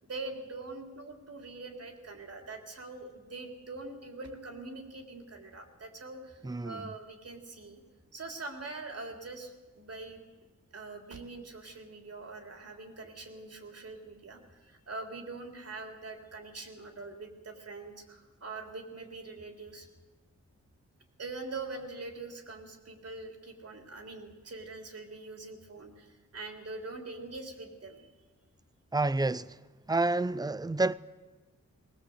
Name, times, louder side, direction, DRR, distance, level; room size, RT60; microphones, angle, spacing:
voice 1, 0.0-7.8 8.1-10.2 10.7-19.9 21.2-28.1, right 3 dB, 55° right, 3.6 m, -43 dB
voice 2, 6.4-6.9 28.9-29.6 29.9-30.9, right 2 dB, 15° right, 0.6 m, -29 dB
20.0 x 20.0 x 8.0 m
wide cardioid pair, 100°, 29 cm